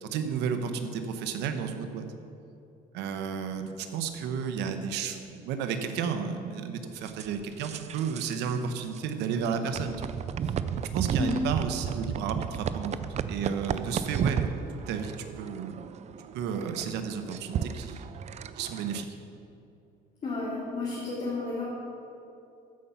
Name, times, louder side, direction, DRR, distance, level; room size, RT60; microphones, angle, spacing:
voice 1, 0.0-2.0 2.9-10.2 10.7-14.5 14.9-15.8 16.3-18.1 18.5-19.1, right 6 dB, 85° right, 7 dB, 1.0 m, -32 dB
sound 1, 7.1-8.5 8.8-9.0 9.7-19.0, right 7 dB, 40° right, 0.4 m, -34 dB
voice 2, 20.2-21.6, left 3 dB, 40° left, -7 dB, 2.7 m, -32 dB
14.0 x 5.6 x 5.8 m, 2.7 s
cardioid pair, 110°, 17 cm